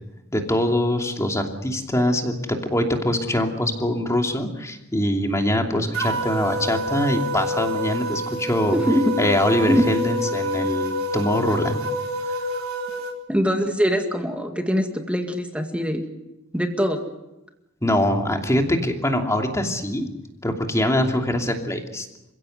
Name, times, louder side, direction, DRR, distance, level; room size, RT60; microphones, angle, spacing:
voice 1, 0.3-8.8 9.2-11.8 12.2-12.3 17.8-20.1 20.4-22.1, left 1 dB, 15° left, 3 dB, 2.8 m, -23 dB
sound 1, 5.9-13.1, equal, 80° right, 4.2 m, -27 dB
voice 2, 8.7-9.1 9.7-10.0 13.3-16.0 16.5-17.0, equal, 5° right, 4 dB, 2.1 m, -22 dB
28.0 x 16.5 x 8.0 m, 0.95 s
head